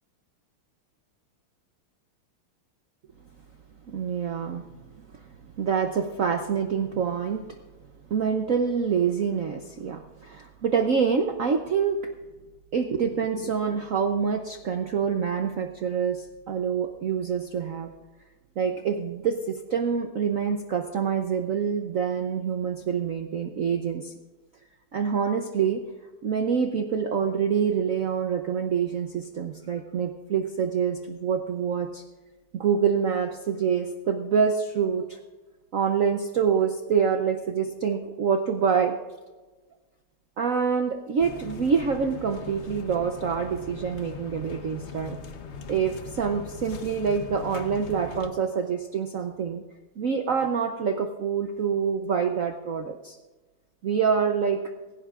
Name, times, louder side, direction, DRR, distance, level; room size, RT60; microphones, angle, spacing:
voice 1, 3.9-4.7 5.1-5.2 5.6-7.4 8.1-12.0 12.7-17.9 18.6-24.1 24.9-25.8 26.2-32.0 32.5-35.2 35.7-39.0 40.4-45.2 45.7-49.6 50.0-53.2 53.8-54.6, right 6 dB, 75° right, 6 dB, 0.7 m, -26 dB
sound 1, 41.2-48.3, left 5 dB, 65° left, 0.6 m, -40 dB
16.5 x 16.5 x 2.4 m, 1.2 s
omnidirectional pair, 2.4 m